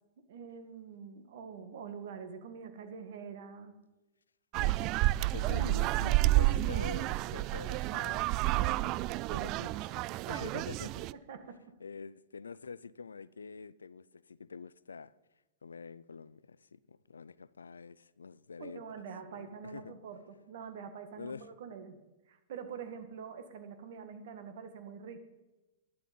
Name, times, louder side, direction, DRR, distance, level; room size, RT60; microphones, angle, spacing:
voice 1, 0.3-3.7 11.3-11.6 18.6-20.2 20.5-22.0 22.3-25.2, right 6 dB, 60° right, 2.0 m, -45 dB
voice 2, 4.5-4.9 5.3-8.8 9.3-11.1 11.8-15.1 15.6-19.0 19.3-19.9 21.2-21.5, left 5 dB, 85° left, 0.4 m, -46 dB
sound 1, 4.5-11.1, right 17 dB, 40° right, 0.3 m, -30 dB
12.5 x 11.5 x 5.4 m
hypercardioid pair, 110°, 0 cm